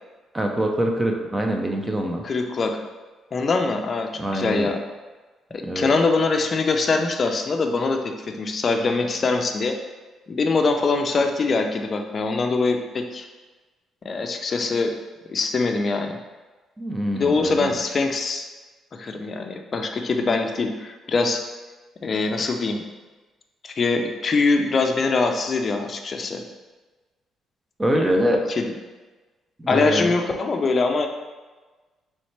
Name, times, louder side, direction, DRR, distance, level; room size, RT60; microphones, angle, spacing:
voice 1, 0.3-2.3 4.2-4.7 5.6-5.9 16.8-17.7 27.8-28.4 29.6-30.1, right 1 dB, 15° right, 2 dB, 0.5 m, -24 dB
voice 2, 2.2-2.7 3.3-4.8 5.5-9.8 10.3-13.3 14.0-14.9 15.3-16.2 17.1-18.4 18.9-21.4 22.0-22.8 23.6-26.4 28.5-28.6 29.7-31.1, left 3 dB, 40° left, 4 dB, 0.4 m, -23 dB
4.1 x 3.1 x 3.3 m, 1.3 s
cardioid pair, 110°, 0 cm